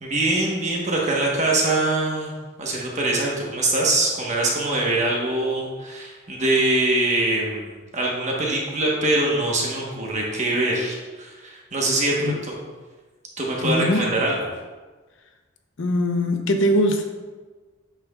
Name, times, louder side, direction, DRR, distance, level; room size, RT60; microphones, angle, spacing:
voice 1, 0.0-2.3 2.6-12.5 13.4-14.5, right 2 dB, 35° right, -3 dB, 1.1 m, -23 dB
voice 2, 13.6-14.0 15.8-17.0, equal, 70° left, 5 dB, 0.7 m, -21 dB
8.2 x 6.2 x 2.3 m, 1.3 s
head